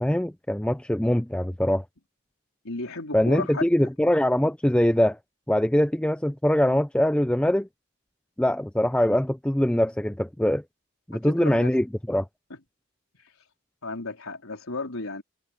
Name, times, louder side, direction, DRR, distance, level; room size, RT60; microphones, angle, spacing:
voice 1, 0.0-1.8 3.1-5.2 5.5-7.7 8.4-10.6 11.1-12.3, left 1 dB, 5° left, 0.4 m, -23 dB
voice 2, 2.6-3.7 11.2-11.7 12.5-12.6 13.8-15.2, left 3 dB, 80° left, 4.1 m, -33 dB
head